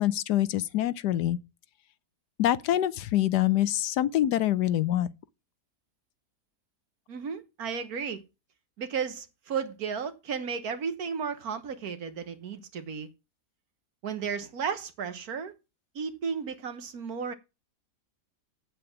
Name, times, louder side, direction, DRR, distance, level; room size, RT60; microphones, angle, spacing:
voice 1, 0.0-1.4 2.4-5.1, left 13 dB, 85° left, 1.3 m, -25 dB
voice 2, 7.1-8.2 8.8-13.1 14.0-15.5 15.9-17.3, right 6 dB, 70° right, 1.6 m, -34 dB
8.1 x 7.7 x 5.8 m
omnidirectional pair, 1.7 m